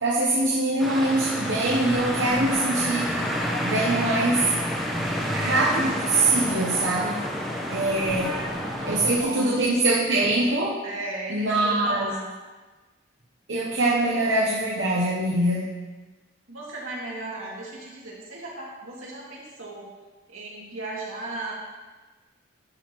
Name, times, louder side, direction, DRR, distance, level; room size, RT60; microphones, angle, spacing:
voice 1, 0.0-3.2 3.6-4.5 5.3-7.2 7.7-8.3 8.9-10.8 11.3-12.1 13.5-15.7, right 2 dB, 60° right, -4 dB, 0.9 m, -23 dB
sound 1, 0.8-9.2, equal, ahead, 1.0 m, -29 dB
voice 2, 8.1-9.7 10.8-12.3 16.5-19.9 20.3-21.5, right 2 dB, 85° right, -5 dB, 2.5 m, -36 dB
11.5 x 6.4 x 3.1 m, 1.3 s
head